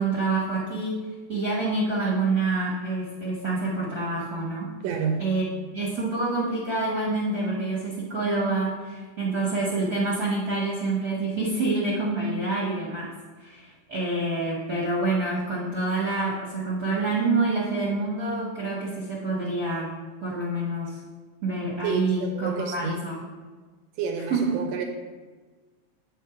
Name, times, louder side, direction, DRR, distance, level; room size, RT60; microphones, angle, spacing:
voice 1, 0.0-4.7 5.2-5.4 5.7-13.1 13.4-21.0 21.4-23.1 24.3-24.6, right 2 dB, 55° right, -5 dB, 1.0 m, -27 dB
voice 2, 4.8-5.3 21.8-23.0 24.0-24.8, right 6 dB, 80° right, 4 dB, 1.5 m, -29 dB
8.1 x 4.5 x 4.7 m, 1.4 s
omnidirectional pair, 3.4 m